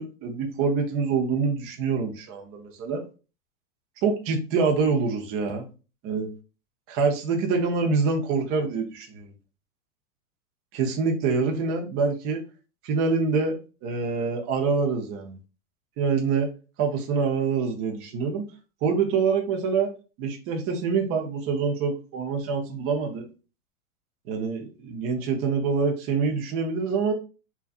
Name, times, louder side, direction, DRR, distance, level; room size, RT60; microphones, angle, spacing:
voice 1, 0.0-3.0 4.0-5.7 6.0-6.3 6.9-9.3 10.7-12.4 12.8-15.4 16.0-16.5 16.8-18.4 18.8-19.9 20.2-23.3 24.3-27.1, right 5 dB, 30° right, 0.6 m, -25 dB
2.5 x 2.4 x 2.3 m
hypercardioid pair, 115°, 43 cm